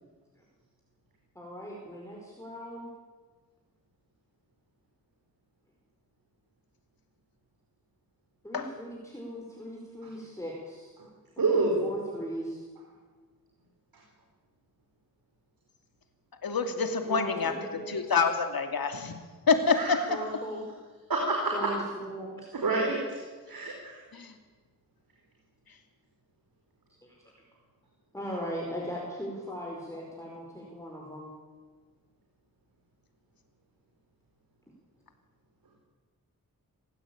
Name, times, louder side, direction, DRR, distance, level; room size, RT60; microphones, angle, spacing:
voice 1, 1.3-2.9 8.4-10.9 11.5-12.7 17.1-18.2 20.1-20.7 21.5-22.5 27.0-27.2 28.1-31.3, equal, 10° left, -2 dB, 5.0 m, -39 dB
voice 2, 11.4-11.8 19.7-20.0 21.1-21.5 22.5-23.2 23.5-24.0, right 3 dB, 80° right, 0 dB, 4.6 m, -27 dB
voice 3, 16.4-17.5 17.9-19.1 19.5-20.0 24.1-24.3, left 5 dB, 90° left, 6 dB, 2.7 m, -26 dB
27.0 x 16.0 x 8.8 m, 1.4 s
wide cardioid pair, 110°, 35 cm